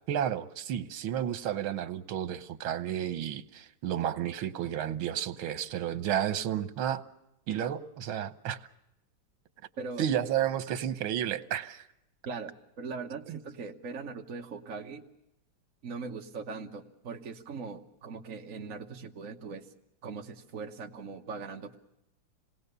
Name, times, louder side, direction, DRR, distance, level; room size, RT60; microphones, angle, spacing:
voice 1, 0.1-7.0 7.5-8.6 10.0-11.8 13.3-13.4, right 10 dB, 80° right, 12 dB, 1.8 m, -32 dB
voice 2, 9.8-10.1 10.7-10.8 12.2-15.1 15.8-19.7 20.0-21.8, right 4 dB, 45° right, 1 dB, 1.4 m, -40 dB
27.5 x 19.5 x 6.7 m, 0.87 s
omnidirectional pair, 2.2 m